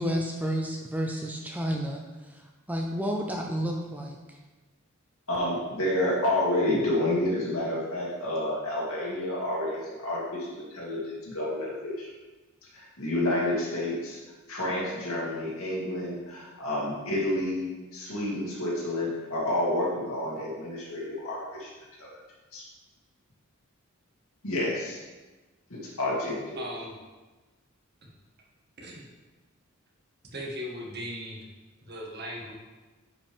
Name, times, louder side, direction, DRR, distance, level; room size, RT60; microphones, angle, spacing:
voice 1, 0.0-4.4, equal, 10° right, 1 dB, 0.6 m, -31 dB
voice 2, 5.3-12.1 12.7-14.2 14.5-21.7 22.0-22.1 22.5-22.6 24.4-25.0 25.7-26.6, left 1 dB, 80° left, -5 dB, 2.5 m, -29 dB
voice 3, 26.6-26.9 28.8-29.0 30.3-31.4 31.9-32.5, equal, 50° right, -2 dB, 1.7 m, -38 dB
9.5 x 5.3 x 3.6 m, 1.2 s
head